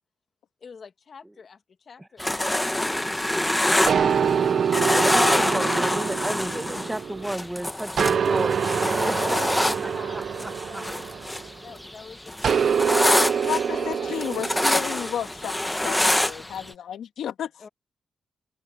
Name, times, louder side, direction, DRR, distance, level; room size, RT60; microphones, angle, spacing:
voice 1, 0.6-1.6 1.9-4.3 5.3-6.2 7.7-7.9 9.2-11.1 11.6-12.3 13.7-15.0 17.6-17.7, left 5 dB, 45° left, 1.8 m, -45 dB
sound 1, 2.2-4.5 4.7-11.5 11.8-16.7, left 1 dB, 10° left, 1.2 m, -25 dB
sound 2, 3.9-7.4 8.0-11.7 12.4-15.1, right 7 dB, 55° right, 0.7 m, -25 dB
voice 2, 5.1-9.7 10.1-10.8, right 1 dB, 10° right, 1.5 m, -32 dB
voice 3, 13.4-17.7, left 9 dB, 85° left, 2.3 m, -32 dB
cardioid pair, 115°, 0 cm